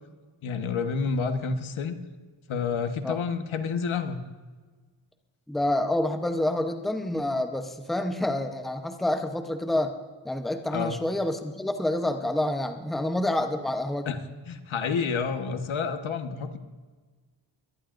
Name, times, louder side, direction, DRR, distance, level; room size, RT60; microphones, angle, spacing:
voice 1, 0.4-2.0 2.5-4.2 10.7-11.0 14.0-14.2 14.5-16.6, left 5 dB, 80° left, 7 dB, 1.3 m, -29 dB
voice 2, 5.5-9.9 10.2-14.1, left 1 dB, ahead, 5 dB, 0.8 m, -28 dB
23.0 x 18.0 x 2.6 m, 1.4 s
wide cardioid pair, 175°, 47 cm